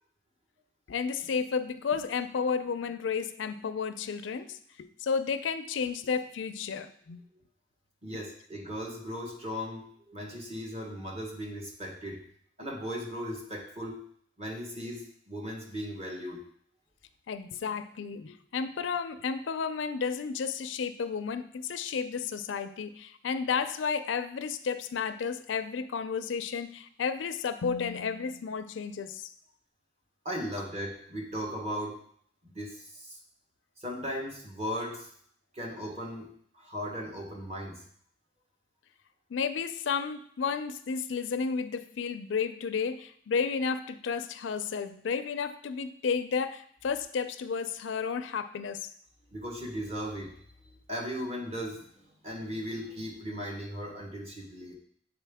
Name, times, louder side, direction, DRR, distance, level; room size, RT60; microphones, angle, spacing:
voice 1, 0.9-7.2 17.3-29.3 39.3-48.9, left 6 dB, 90° left, 11 dB, 0.4 m, -32 dB
voice 2, 8.0-12.2 12.6-14.1 14.4-16.4 30.2-32.0 32.4-33.2 33.8-35.1 35.5-37.8 49.3-50.3 50.6-54.8, equal, 35° right, 0 dB, 1.2 m, -37 dB
8.3 x 3.9 x 3.5 m, 0.63 s
head